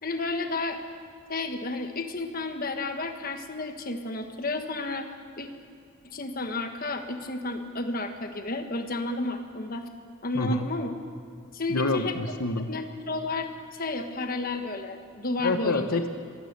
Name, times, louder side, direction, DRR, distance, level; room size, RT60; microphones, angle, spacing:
voice 1, 0.0-0.8 1.3-5.1 5.4-5.5 6.0-9.9 10.2-10.9 11.5-12.1 12.7-15.9, left 2 dB, 45° left, 6 dB, 1.4 m, -32 dB
voice 2, 10.3-10.7 11.7-12.7 15.4-16.1, left 2 dB, 85° left, 7 dB, 1.2 m, -27 dB
24.0 x 16.5 x 6.8 m, 2.2 s
head